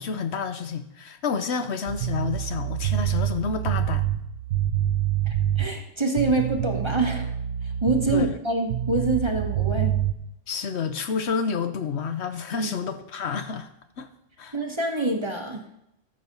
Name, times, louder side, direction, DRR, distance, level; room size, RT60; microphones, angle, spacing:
voice 1, 0.0-4.1 8.1-8.3 10.5-13.7 14.0-14.1 14.4-14.5, left 5 dB, 65° left, 9 dB, 1.0 m, -29 dB
sound 1, 1.9-5.8 6.2-8.4 8.7-10.1, right 11 dB, 90° right, 1.0 m, -26 dB
voice 2, 5.3-7.3 7.8-10.0 12.6-12.7 14.5-15.6, right 2 dB, 25° right, 3 dB, 1.2 m, -26 dB
13.5 x 6.4 x 5.3 m, 0.79 s
omnidirectional pair, 1.3 m